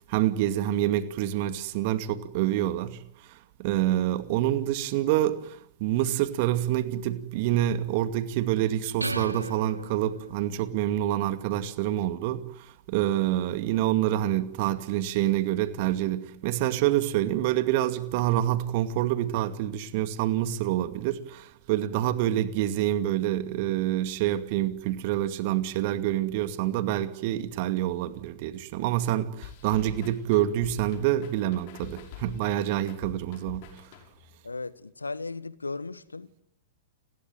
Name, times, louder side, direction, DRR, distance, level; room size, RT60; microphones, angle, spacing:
voice 1, 0.1-3.0 3.3-33.8, right 13 dB, 45° right, 2.4 m, -27 dB
sound 1, 9.0-10.6, right 1 dB, 85° right, 1.8 m, -35 dB
sound 2, 29.4-34.4, left 10 dB, 45° left, 6.1 m, -45 dB
voice 2, 34.4-36.4, left 3 dB, 80° left, 1.4 m, -36 dB
30.0 x 21.5 x 9.2 m
figure-of-eight pair, 105°, 0 cm